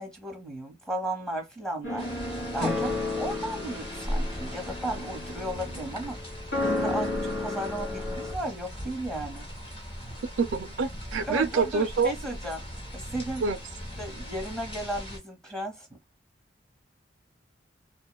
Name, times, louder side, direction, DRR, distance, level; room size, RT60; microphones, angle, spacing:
voice 1, 0.0-6.2 6.6-9.4 11.3-12.6 12.9-13.4 14.0-15.9, right 1 dB, 5° left, 0.9 m, -35 dB
sound 1, 1.8-8.3, left 2 dB, 90° left, 1.1 m, -32 dB
sound 2, 2.0-15.2, equal, 30° left, 1.0 m, -39 dB
voice 2, 10.4-12.1 13.4-13.6, right 5 dB, 85° right, 0.4 m, -26 dB
2.5 x 2.2 x 2.2 m
head